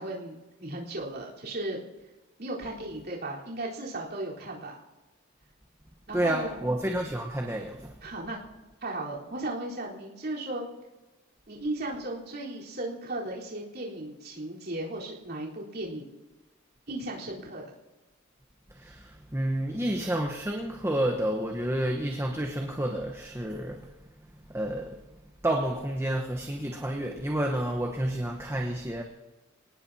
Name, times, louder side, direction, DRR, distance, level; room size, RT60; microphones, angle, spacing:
voice 1, 0.0-1.8 2.4-4.8 6.1-6.6 8.0-8.4 8.8-10.7 11.5-16.1 16.9-17.7, right 2 dB, 50° right, 4.0 m, -36 dB
voice 2, 6.1-7.9 18.7-23.9 24.5-25.0 25.4-29.0, right 1 dB, 15° right, 1.1 m, -30 dB
26.5 x 18.5 x 2.8 m
head